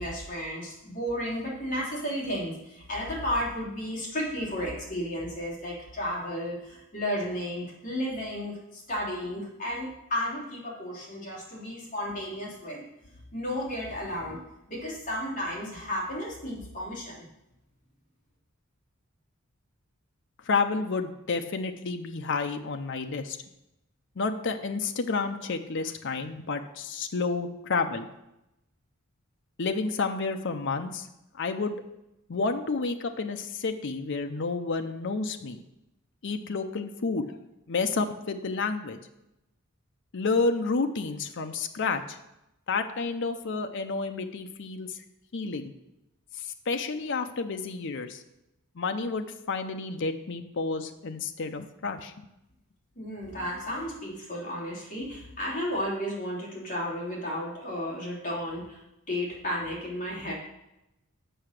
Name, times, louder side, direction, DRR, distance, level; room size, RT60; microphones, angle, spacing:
voice 1, 0.0-12.8 13.3-14.4 14.7-17.2 53.0-58.8 59.1-60.3, equal, 35° left, -5 dB, 2.9 m, -33 dB
voice 2, 20.4-23.4 24.2-28.1 29.6-31.1 31.3-31.8 32.3-35.6 36.2-37.4 37.7-39.0 40.1-42.2 42.7-45.0 45.3-45.7 46.4-48.2 48.8-52.3, left 4 dB, 55° left, 6 dB, 0.6 m, -30 dB
7.9 x 5.7 x 6.5 m, 0.89 s
head